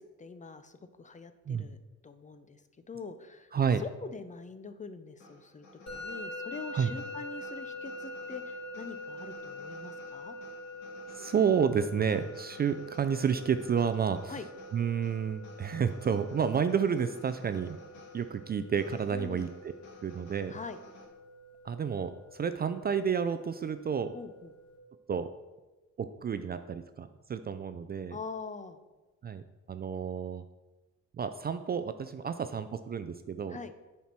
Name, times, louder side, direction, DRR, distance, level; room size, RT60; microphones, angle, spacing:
voice 1, 0.0-1.8 2.0-2.6 2.9-3.5 3.8-5.7 5.9-10.4 14.3-14.5 19.1-19.5 20.5-20.8 24.1-24.5 28.1-28.8 33.5-33.7, left 4 dB, 25° left, 10 dB, 0.6 m, -44 dB
voice 2, 3.5-3.8 6.7-6.9 11.1-14.4 14.7-17.8 18.1-19.5 20.0-20.5 21.6-24.1 25.1-25.3 26.0-28.2 29.2-29.4 29.7-30.4 31.2-33.6, right 7 dB, 35° right, 10 dB, 0.4 m, -30 dB
sound 1, 5.2-21.1, left 1 dB, 90° left, 1.9 m, -55 dB
Musical instrument, 5.9-24.8, left 1 dB, 60° left, 2.4 m, -45 dB
7.2 x 4.4 x 5.9 m, 1.1 s
cardioid pair, 90°, 30 cm